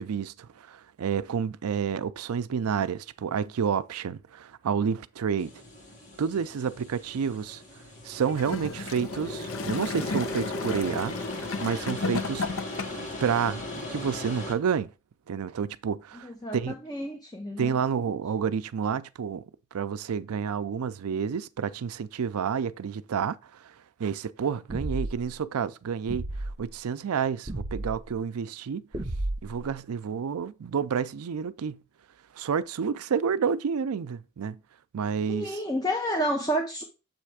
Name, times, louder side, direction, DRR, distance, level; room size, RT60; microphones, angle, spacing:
voice 1, 0.0-5.5 6.2-7.6 8.0-11.2 11.6-12.5 13.2-14.9 15.3-16.7 17.6-19.4 19.7-23.7 24.0-26.2 26.6-28.9 29.4-31.8 32.3-34.6 34.9-35.6, right 6 dB, 90° right, 0.4 m, -29 dB
sound 1, 5.4-14.5, left 1 dB, 35° left, 1.4 m, -37 dB
Gurgling / Toilet flush, 8.3-13.2 14.0-14.1, left 4 dB, 70° left, 0.6 m, -34 dB
voice 2, 16.2-17.8 35.3-36.8, equal, 20° left, 0.7 m, -30 dB
sound 2, 24.7-25.3 26.1-26.6 27.5-28.0 28.9-29.7, right 1 dB, 25° right, 0.9 m, -32 dB
7.6 x 3.3 x 4.8 m
head